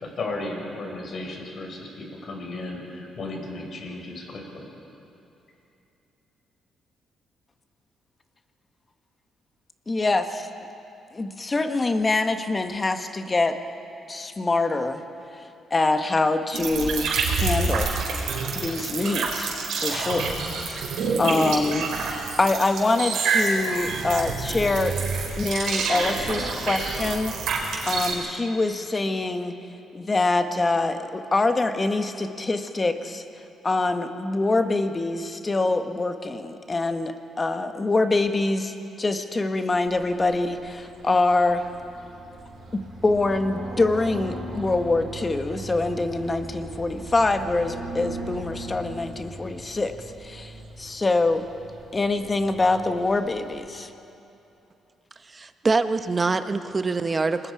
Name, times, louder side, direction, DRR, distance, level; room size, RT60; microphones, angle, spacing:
voice 1, 0.0-4.6, left 2 dB, 50° left, 0 dB, 5.5 m, -34 dB
voice 2, 9.9-10.5 11.1-13.6 14.1-15.0 15.4-15.5 15.7-17.9 18.5-19.5 19.8-20.9 21.2-25.0 25.4-29.5 29.9-33.2 33.6-41.7 42.7-49.9 50.2-51.4 51.9-53.9, left 2 dB, 25° left, 7 dB, 1.4 m, -25 dB
sound 1, 16.5-28.1, right 4 dB, 75° right, 4.4 m, -27 dB
sound 2, 39.9-53.6, right 2 dB, 60° right, 5.2 m, -39 dB
voice 3, 55.3-57.5, right 3 dB, 30° right, 9 dB, 1.0 m, -24 dB
28.5 x 20.0 x 4.9 m, 2.8 s
cardioid pair, 90°, 0 cm